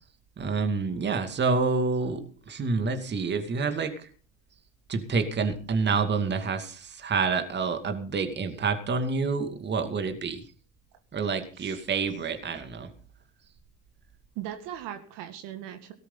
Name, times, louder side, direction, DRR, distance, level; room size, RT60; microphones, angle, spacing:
voice 1, 0.4-4.1 4.9-10.4 11.1-12.9, right 4 dB, 25° right, 7 dB, 2.3 m, -28 dB
voice 2, 14.4-15.9, right 11 dB, 55° right, 7 dB, 2.1 m, -39 dB
18.0 x 13.0 x 4.0 m, 0.40 s
hypercardioid pair, 80°, 39 cm